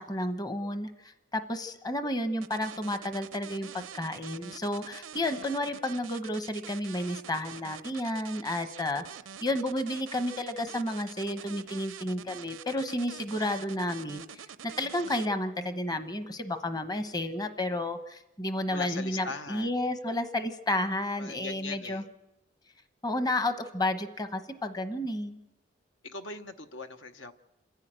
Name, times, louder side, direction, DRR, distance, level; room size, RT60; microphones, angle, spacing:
voice 1, 0.0-9.0 9.4-22.0 23.0-25.4, left 1 dB, 20° left, 8 dB, 1.0 m, -32 dB
sound 1, 2.4-15.3, right 9 dB, 90° right, 0.6 m, -45 dB
voice 2, 18.7-19.7 21.2-22.0 26.0-27.3, left 3 dB, 70° left, 8 dB, 1.0 m, -40 dB
27.5 x 10.5 x 8.9 m, 0.95 s
head